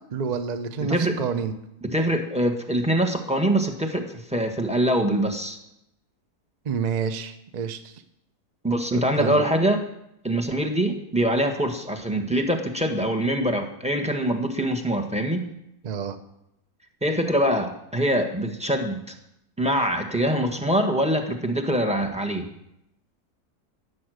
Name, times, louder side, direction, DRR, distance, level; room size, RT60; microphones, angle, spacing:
voice 1, 0.1-1.5 6.6-7.9 8.9-9.4 15.8-16.2, right 6 dB, 35° right, 9 dB, 0.8 m, -28 dB
voice 2, 1.9-5.6 8.6-9.8 10.2-15.5 17.0-19.1 19.6-22.4, right 1 dB, 5° right, 4 dB, 1.3 m, -24 dB
15.5 x 8.5 x 6.4 m, 0.82 s
omnidirectional pair, 1.7 m